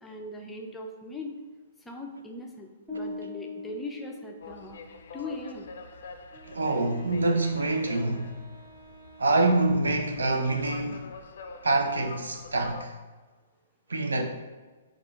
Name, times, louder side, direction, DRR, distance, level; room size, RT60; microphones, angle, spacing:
voice 1, 0.0-1.4 1.8-4.8 5.1-5.7, left 2 dB, 10° left, 0.5 m, -40 dB
sound 1, 2.9-5.1, left 2 dB, 25° right, 1.2 m, -40 dB
sound 2, 4.4-12.9, left 4 dB, 65° left, 0.4 m, -46 dB
Wind instrument woodwind instrument, 6.3-10.4, right 6 dB, 55° right, 0.9 m, -50 dB
voice 2, 6.4-8.4 9.2-11.1 11.6-12.9 13.9-14.2, right 2 dB, 80° right, 0.6 m, -26 dB
5.0 x 2.4 x 3.5 m
hypercardioid pair, 125°, 0 cm